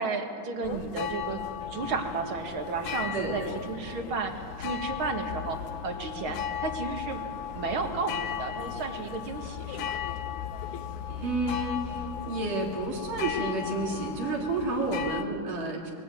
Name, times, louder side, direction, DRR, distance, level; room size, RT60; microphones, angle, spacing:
voice 1, 0.0-7.2 7.5-10.0, right 4 dB, 45° right, 4 dB, 2.3 m, -33 dB
sound 1, 0.6-15.2, left 9 dB, 75° left, 2.3 m, -36 dB
voice 2, 3.1-3.6 11.1-15.9, right 2 dB, 75° right, -2 dB, 4.4 m, -31 dB
22.5 x 18.5 x 9.2 m, 2.6 s
omnidirectional pair, 3.7 m